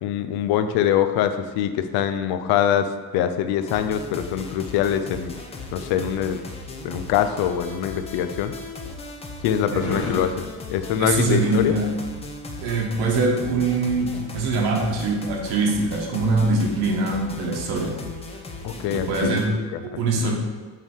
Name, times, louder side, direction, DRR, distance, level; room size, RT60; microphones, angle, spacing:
voice 1, 0.0-5.3 5.7-6.4 6.8-8.5 9.4-11.8 18.6-19.4 19.7-20.3, left 9 dB, 75° left, 10 dB, 0.6 m, -24 dB
sound 1, 3.6-19.5, left 3 dB, 15° left, 0.7 m, -37 dB
sound 2, 7.5-13.2, left 3 dB, 50° left, 1.8 m, -38 dB
voice 2, 11.0-11.9 12.6-18.0 18.9-19.6 19.8-20.3, right 3 dB, 80° right, 0 dB, 1.6 m, -23 dB
8.0 x 3.7 x 4.7 m, 1.5 s
cardioid pair, 165°, 38 cm